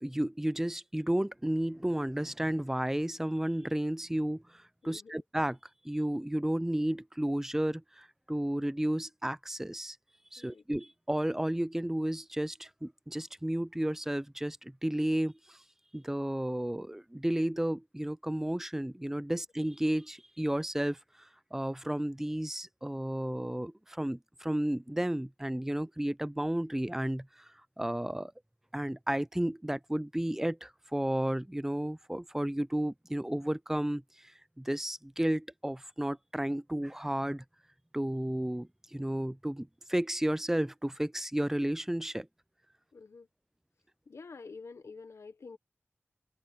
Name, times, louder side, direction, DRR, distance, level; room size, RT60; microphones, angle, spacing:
voice 1, 0.0-5.6 5.8-10.0 10.3-15.6 15.9-21.0 21.5-27.5 27.8-28.3 28.7-34.3 34.6-37.4 37.9-42.3, right 1 dB, 10° right, 0.5 m, -32 dB
voice 2, 4.8-5.2 10.4-10.6 19.3-19.4 42.9-43.3 44.1-45.6, left 4 dB, 90° left, 1.1 m, -48 dB
wide cardioid pair, 65°, 5 cm